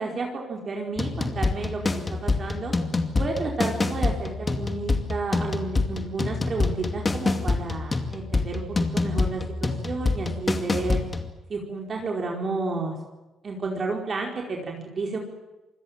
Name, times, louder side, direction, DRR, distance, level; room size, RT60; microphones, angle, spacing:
voice 1, 0.0-2.7 3.2-11.0 11.5-13.0 13.4-15.2, right 3 dB, 40° right, 0 dB, 4.7 m, -31 dB
sound 1, 1.0-11.3, left 3 dB, 25° left, 2.5 m, -26 dB
27.0 x 21.0 x 7.6 m, 1.1 s
cardioid pair, 90°, 0 cm